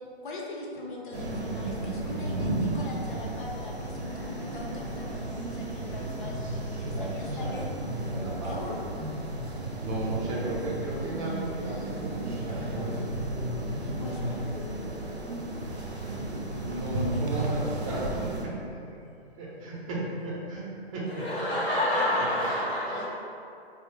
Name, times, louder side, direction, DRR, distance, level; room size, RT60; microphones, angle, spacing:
voice 1, 0.2-7.7 8.4-8.8 14.0-14.5, left 2 dB, 50° left, -2 dB, 0.6 m, -41 dB
sound 1, 1.1-18.5, right 1 dB, 90° right, 0.6 m, -34 dB
voice 2, 6.8-7.7 8.1-8.5 9.8-13.0 13.7-14.3 16.6-18.9 19.4-20.6 20.9-21.5 22.4-23.0, right 1 dB, 30° right, -5 dB, 0.6 m, -35 dB
voice 3, 21.2-23.0, left 1 dB, 5° left, -18 dB, 0.4 m, -27 dB
3.7 x 2.0 x 3.0 m, 2.6 s
figure-of-eight pair, 130°, 32 cm